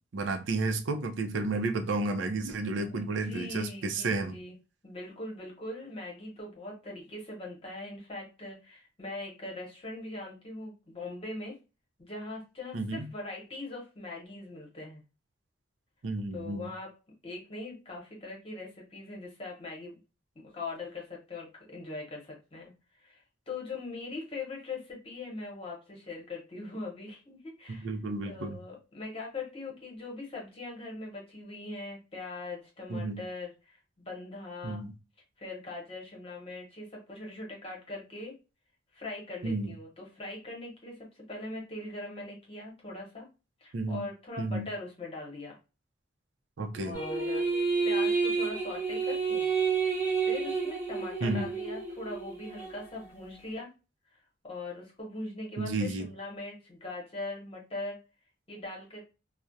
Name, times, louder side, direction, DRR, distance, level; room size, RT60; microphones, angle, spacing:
voice 1, 0.1-4.3 12.7-13.1 16.0-16.7 27.7-28.6 32.9-33.2 34.6-34.9 39.4-39.8 43.7-44.1 44.4-44.7 46.6-47.0 51.2-51.5 55.6-56.1, right 3 dB, 85° right, 0.5 m, -32 dB
voice 2, 2.9-4.5 4.8-11.6 12.0-15.0 16.3-17.0 17.2-20.0 20.3-27.9 28.2-34.8 35.4-38.3 38.9-43.3 43.6-45.6 46.8-47.4 47.8-49.5 50.2-53.7 54.1-58.0 58.5-59.0, left 2 dB, 30° left, 0.9 m, -41 dB
sound 1, 46.9-52.8, right 5 dB, 10° right, 0.7 m, -30 dB
2.4 x 2.0 x 2.5 m
head